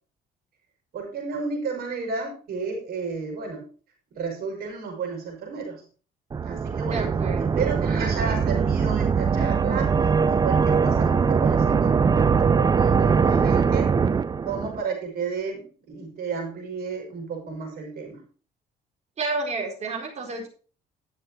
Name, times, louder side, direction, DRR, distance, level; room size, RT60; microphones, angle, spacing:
voice 1, 0.9-3.6 4.1-5.8 6.4-13.9 14.4-18.2, right 5 dB, 65° right, 2 dB, 6.2 m, -32 dB
sound 1, 6.3-14.8, right 6 dB, 25° right, 0.5 m, -21 dB
voice 2, 6.9-7.5 19.2-20.5, right 3 dB, 40° right, 1 dB, 4.4 m, -30 dB
11.5 x 7.9 x 4.6 m, 0.39 s
cardioid pair, 110°, 17 cm